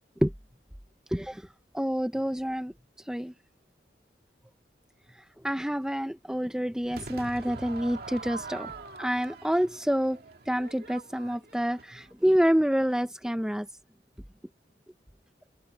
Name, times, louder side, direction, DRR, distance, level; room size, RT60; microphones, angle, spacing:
voice 1, 1.1-1.5 1.7-2.7 3.1-3.3 5.4-8.7 9.0-13.7, equal, 5° right, 0.6 m, -27 dB
Crowd / Fireworks, 6.9-12.2, right 3 dB, 60° right, 2.2 m, -44 dB
head